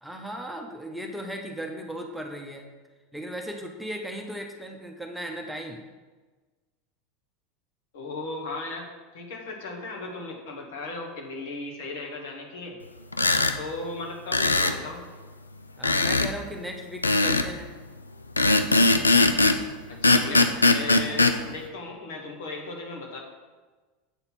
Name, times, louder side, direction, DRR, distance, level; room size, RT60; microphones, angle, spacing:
voice 1, 0.0-2.7 3.1-5.8 15.8-17.7, equal, 5° right, 2 dB, 1.0 m, -36 dB
voice 2, 7.9-12.8 13.6-15.0 19.9-23.2, left 3 dB, 65° left, 0 dB, 1.7 m, -36 dB
sound 1, 13.1-13.6 14.3-14.8 15.8-16.3 17.0-17.5 18.4-19.6 20.0-21.4, left 2 dB, 90° left, 0.4 m, -20 dB
7.9 x 4.2 x 6.0 m, 1.3 s
figure-of-eight pair, 80°, 0 cm